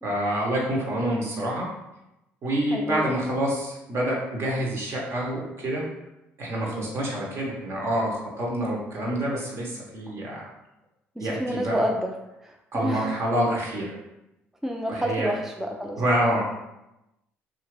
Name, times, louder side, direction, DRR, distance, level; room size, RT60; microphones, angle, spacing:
voice 1, 0.0-1.7 2.4-5.9 6.4-10.4 11.2-11.7 12.7-13.9 14.9-15.3 16.0-16.7, right 1 dB, 50° right, -2 dB, 1.0 m, -27 dB
voice 2, 2.7-3.2 6.7-7.0 11.2-12.2 12.4-13.2 14.6-16.0, equal, 5° right, 1 dB, 0.3 m, -29 dB
2.7 x 2.4 x 3.1 m, 0.93 s
supercardioid pair, 65°, 5 cm